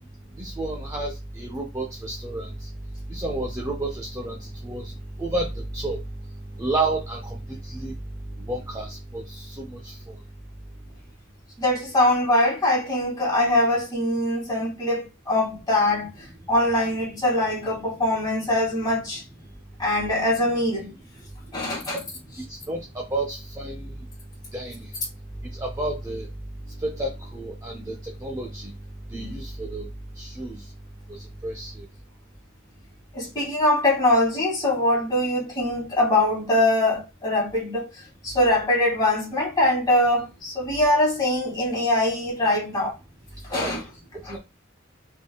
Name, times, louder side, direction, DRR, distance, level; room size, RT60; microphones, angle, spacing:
voice 1, 0.4-2.7 3.1-4.9 5.2-6.0 6.6-7.9 8.5-10.2 21.9-22.1 22.5-23.9 24.5-24.9 25.6-26.3 26.8-28.7 29.1-29.9 30.2-30.6 31.1-31.8 43.5-43.8 44.2-44.4, right 2 dB, 15° right, 0.6 m, -31 dB
voice 2, 11.6-16.1 16.5-19.2 19.8-20.9 21.5-22.0 33.1-37.9 38.2-42.9 43.5-43.8 44.2-44.4, left 1 dB, 20° left, 2.1 m, -22 dB
3.8 x 3.6 x 2.3 m
head